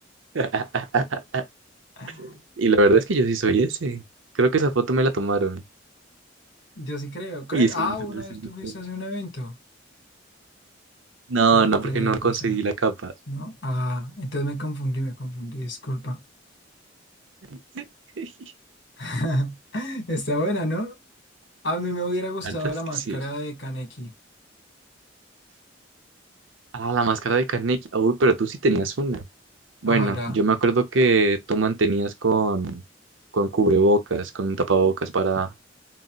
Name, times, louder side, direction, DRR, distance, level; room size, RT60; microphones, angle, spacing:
voice 1, 0.3-1.4 2.2-4.0 4.3-5.6 7.5-8.2 8.6-8.7 11.3-13.1 17.7-17.8 18.2-18.3 22.5-22.7 23.1-23.2 26.7-29.3 29.8-32.8 33.3-35.5, right 3 dB, 85° right, 0.7 m, -22 dB
voice 2, 2.0-2.4 6.8-9.6 11.5-12.6 13.3-16.2 19.0-20.9 21.6-24.1 29.8-30.4, equal, 65° left, 1.7 m, -30 dB
4.0 x 2.1 x 2.3 m
head